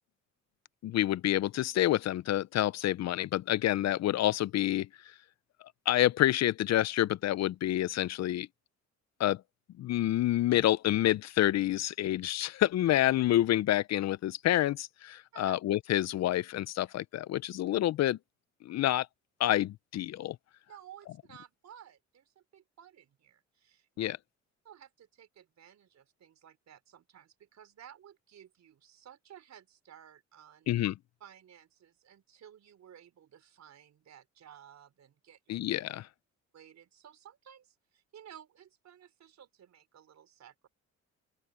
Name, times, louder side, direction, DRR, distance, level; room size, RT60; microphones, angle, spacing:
voice 1, 0.8-4.9 5.9-8.5 9.2-9.4 9.8-18.2 18.6-19.1 19.4-20.4 24.0-24.2 30.7-30.9 35.5-36.1, left 13 dB, 60° left, 0.5 m, -28 dB
voice 2, 20.7-24.1 24.6-30.7 31.2-35.6 36.5-40.7, right 9 dB, 60° right, 4.6 m, -55 dB
open air
cardioid pair, 90°, 30 cm